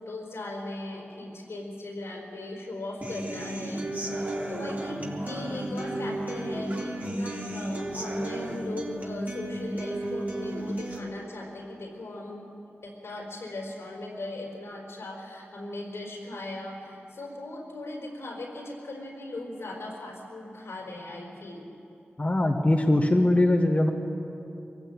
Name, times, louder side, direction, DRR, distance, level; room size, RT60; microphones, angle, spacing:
voice 1, 0.0-12.5 12.8-21.7, left 2 dB, 85° left, 0 dB, 4.5 m, -38 dB
Human voice / Acoustic guitar, 3.0-11.0, right 1 dB, 40° right, 3.4 m, -33 dB
voice 2, 22.2-23.9, left 1 dB, 35° left, 1 dB, 1.8 m, -21 dB
22.5 x 15.0 x 8.9 m, 2.7 s
cardioid pair, 50°, 4 cm